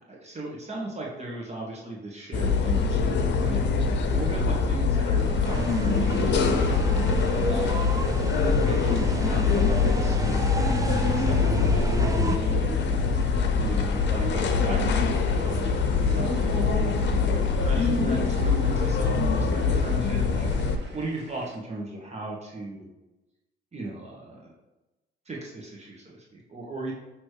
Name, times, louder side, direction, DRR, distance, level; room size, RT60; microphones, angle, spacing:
voice 1, 0.0-6.7 7.5-10.7 11.1-12.9 13.6-15.7 16.0-20.7 20.9-22.9 23.7-24.5 25.2-26.9, right 2 dB, 35° right, -3 dB, 1.4 m, -37 dB
sound 1, 2.3-20.8, left 4 dB, 65° left, 0.7 m, -24 dB
sound 2, 5.2-21.6, right 2 dB, 65° right, 1.6 m, -47 dB
sound 3, 5.4-12.4, right 4 dB, 15° right, 0.4 m, -32 dB
6.3 x 3.1 x 4.9 m, 1.0 s
cardioid pair, 90°, 20 cm